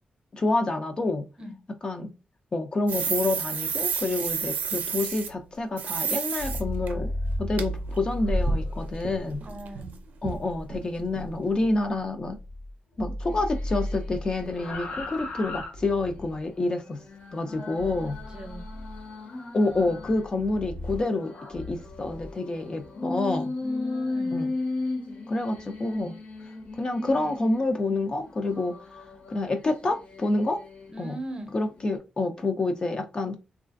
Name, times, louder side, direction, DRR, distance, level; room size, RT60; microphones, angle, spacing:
voice 1, 0.3-1.3 1.8-2.1 2.5-7.1 7.4-9.4 10.2-12.4 13.0-17.0 17.3-18.2 19.5-23.5 24.3-24.5 25.3-26.2 26.8-28.8 29.3-30.6 31.0-31.2 31.5-33.4, left 2 dB, 30° left, 0.3 m, -28 dB
sound 1, 2.9-5.3 5.8-6.6 6.9-7.0 7.6-7.7 7.9-9.9 10.2-10.4 10.7-10.8 11.1-11.3 11.6-11.7, right 6 dB, 85° right, 0.4 m, -30 dB
sound 2, 6.3-12.7 13.0-16.4 17.8-19.0 19.7-22.3, left 1 dB, 85° left, 1.0 m, -35 dB
voice 2, 9.4-10.0 17.5-17.9 18.3-18.6 23.6-24.3 25.4-25.6 30.9-31.5, equal, 30° right, 0.6 m, -39 dB
sound 3, 13.2-15.3 15.8-20.3 20.7-27.7 28.2-31.2 31.7-32.0, left 2 dB, 55° left, 0.8 m, -37 dB
3.1 x 2.3 x 2.4 m
wide cardioid pair, 130°, 3 cm